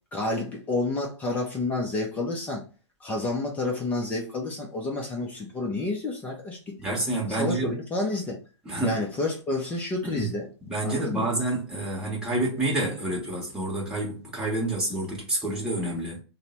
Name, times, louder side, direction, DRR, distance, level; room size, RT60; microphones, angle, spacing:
voice 1, 0.1-2.6 3.0-6.8 7.3-8.4 8.8-10.5 10.8-11.3, left 2 dB, 10° left, 0.4 m, -29 dB
voice 2, 6.8-7.7 8.6-9.0 10.0-10.3 10.6-16.2, right 2 dB, 5° right, 1.0 m, -28 dB
3.1 x 2.0 x 4.1 m
hypercardioid pair, 145°, 15 cm